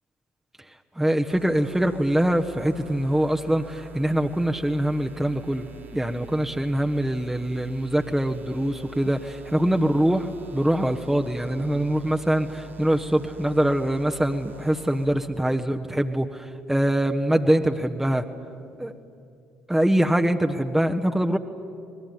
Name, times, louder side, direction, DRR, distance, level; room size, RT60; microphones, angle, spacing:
voice 1, 1.0-18.2 18.8-18.9 19.7-21.4, right 1 dB, 5° right, 4 dB, 1.3 m, -23 dB
sound 1, 1.3-15.0, right 4 dB, 85° right, 2.1 m, -45 dB
26.5 x 21.0 x 9.5 m, 2.5 s
figure-of-eight pair, 50°, 6 cm